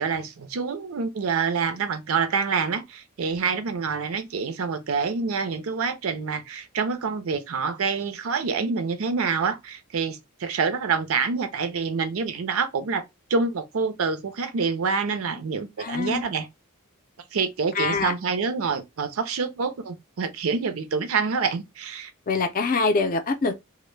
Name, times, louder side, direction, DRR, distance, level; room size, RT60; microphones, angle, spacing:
voice 1, 0.0-13.0 13.3-16.5 17.3-22.1, right 5 dB, 75° right, 0.5 m, -27 dB
voice 2, 15.8-16.2 17.7-18.1 22.3-23.5, left 4 dB, 40° left, 0.4 m, -24 dB
2.1 x 2.1 x 3.1 m
head